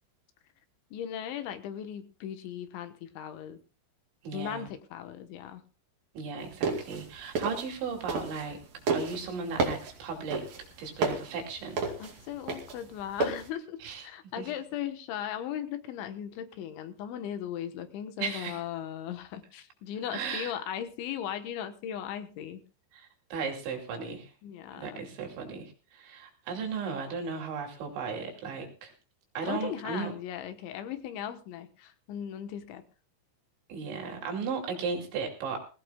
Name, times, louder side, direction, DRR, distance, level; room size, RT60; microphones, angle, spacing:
voice 1, 0.9-3.6 4.3-5.6 11.8-22.6 24.4-25.1 29.4-32.8, left 10 dB, 75° left, 8 dB, 3.4 m, -38 dB
voice 2, 4.2-4.7 6.1-8.6 8.9-10.4 10.8-11.8 13.8-14.1 14.4-14.5 18.2-18.6 20.1-20.5 22.9-24.3 24.7-28.9 29.3-30.1 33.7-35.6, right 5 dB, 70° right, 2 dB, 4.9 m, -36 dB
sound 1, 6.4-8.6 8.9-13.5, right 3 dB, 50° right, 3.8 m, -31 dB
20.5 x 17.0 x 2.3 m, 0.34 s
omnidirectional pair, 5.7 m